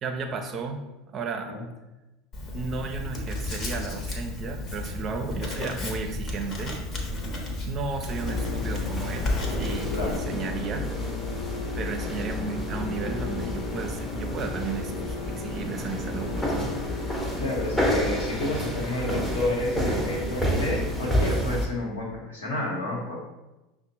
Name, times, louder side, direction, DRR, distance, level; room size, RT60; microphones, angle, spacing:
voice 1, 0.0-1.6 2.5-6.8 7.6-10.9 11.7-16.8, right 4 dB, 40° right, 5 dB, 0.5 m, -34 dB
Writing, 2.3-10.2, left 2 dB, 40° left, 0.9 m, -33 dB
sound 1, 8.1-21.7, equal, 15° left, 0.8 m, -30 dB
sound 2, 8.2-18.2, left 6 dB, 55° left, 0.3 m, -36 dB
voice 2, 9.9-10.2 17.4-23.2, left 1 dB, 80° left, -2 dB, 0.9 m, -30 dB
5.7 x 2.1 x 2.8 m, 1.0 s
hypercardioid pair, 75°, 0 cm